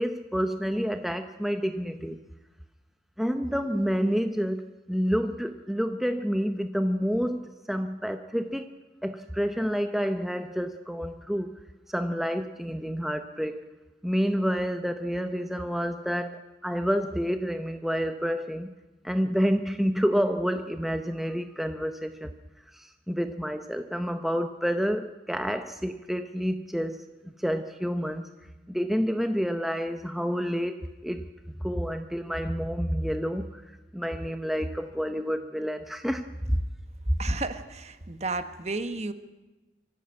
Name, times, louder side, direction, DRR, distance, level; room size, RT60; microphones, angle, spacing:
voice 1, 0.0-2.2 3.2-8.7 9.0-11.6 11.9-13.7 14.0-18.7 19.0-22.3 22.7-27.1 27.4-28.3 28.7-31.2 31.6-33.6 33.9-36.6, equal, ahead, 0.7 m, -29 dB
voice 2, 37.2-39.1, right 3 dB, 35° right, 1.3 m, -33 dB
24.5 x 15.5 x 8.7 m
head